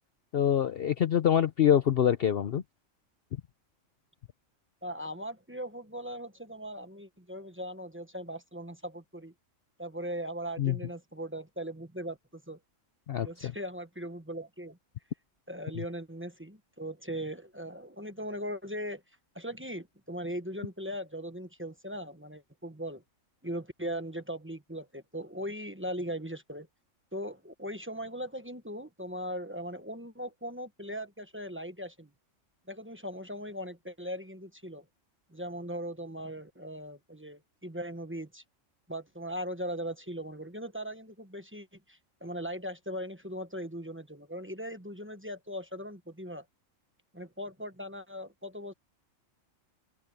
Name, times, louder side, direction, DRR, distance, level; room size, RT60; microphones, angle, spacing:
voice 1, 0.3-2.6 10.6-10.8 13.1-13.5, left 9 dB, 55° left, 0.8 m, -25 dB
voice 2, 4.8-9.3 9.8-12.6 13.2-14.8 15.5-19.0 19.3-23.0 23.4-26.7 27.1-32.1 32.7-34.9 35.3-38.4 38.9-46.4 47.1-48.7, equal, 10° right, 1.1 m, -39 dB
omnidirectional pair, 1.3 m